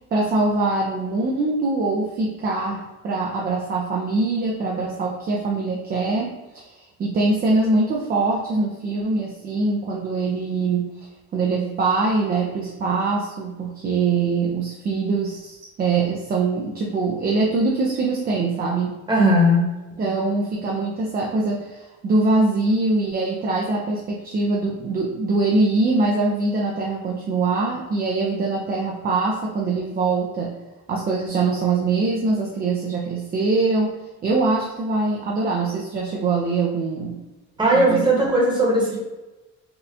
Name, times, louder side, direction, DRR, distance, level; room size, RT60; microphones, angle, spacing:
voice 1, 0.1-10.9 11.3-19.0 20.0-30.5 30.9-33.9 34.2-37.2 37.7-38.0, right 3 dB, 30° right, -1 dB, 0.4 m, -23 dB
voice 2, 19.1-19.7 37.6-39.0, right 1 dB, 15° right, -4 dB, 1.0 m, -17 dB
4.2 x 2.3 x 2.6 m, 1.1 s
cardioid pair, 130°, 29 cm